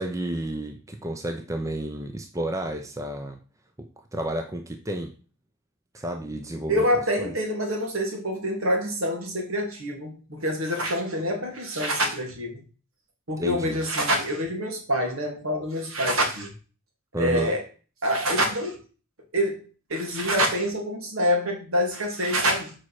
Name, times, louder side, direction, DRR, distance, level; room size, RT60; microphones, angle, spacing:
voice 1, 0.0-3.4 3.8-5.1 5.9-6.9 7.2-7.3 13.4-13.8 17.1-17.5, right 1 dB, 15° right, 6 dB, 0.7 m, -31 dB
voice 2, 6.7-12.6 13.3-16.5 17.2-17.6 18.0-18.8 19.3-19.6 19.9-22.7, equal, 75° right, 2 dB, 2.6 m, -26 dB
7.3 x 4.7 x 6.2 m, 0.37 s
head